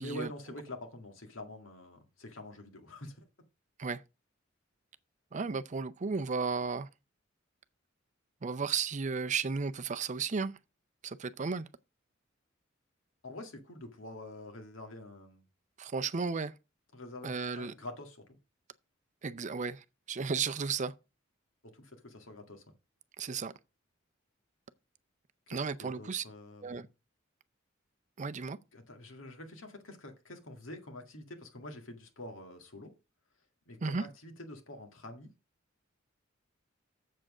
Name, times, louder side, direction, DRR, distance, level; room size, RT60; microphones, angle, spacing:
voice 1, 0.0-3.2 13.2-15.4 16.9-18.2 21.7-22.6 25.5-26.9 28.7-32.9 33.7-35.3, left 1 dB, 80° left, 2.0 m, -46 dB
voice 2, 5.3-6.9 8.4-10.5 11.0-11.7 15.8-16.5 17.2-17.7 19.2-20.9 23.2-23.5 25.5-26.2 26.6-26.9 28.2-28.6 33.8-34.0, right 5 dB, 35° right, 0.5 m, -34 dB
7.5 x 7.5 x 4.9 m
head